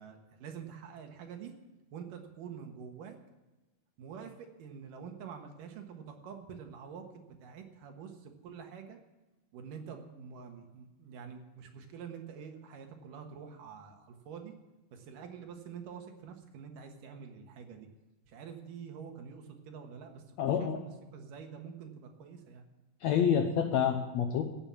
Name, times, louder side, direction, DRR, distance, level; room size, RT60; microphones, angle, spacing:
voice 1, 0.0-1.5 1.9-3.2 4.0-9.0 9.5-14.5 14.9-17.9 18.3-20.2 20.6-22.7, right 7 dB, 75° right, 4 dB, 3.0 m, -47 dB
voice 2, 20.4-20.8 23.0-24.4, left 8 dB, 70° left, 5 dB, 1.7 m, -28 dB
17.0 x 7.2 x 7.2 m, 1.1 s
omnidirectional pair, 4.0 m